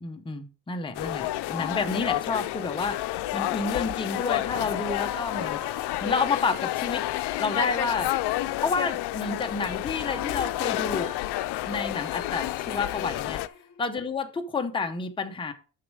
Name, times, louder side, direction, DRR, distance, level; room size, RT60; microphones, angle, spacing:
voice 1, 0.0-5.6 6.0-7.0 7.4-8.1 8.6-11.1 11.7-13.4 13.8-15.5, left 4 dB, 15° left, 5 dB, 0.8 m, -30 dB
sound 1, 0.9-13.5, left 16 dB, 75° left, 0.6 m, -30 dB
sound 2, 4.2-14.0, left 8 dB, 50° left, 1.1 m, -42 dB
6.5 x 6.4 x 4.8 m, 0.37 s
cardioid pair, 135°, 40 cm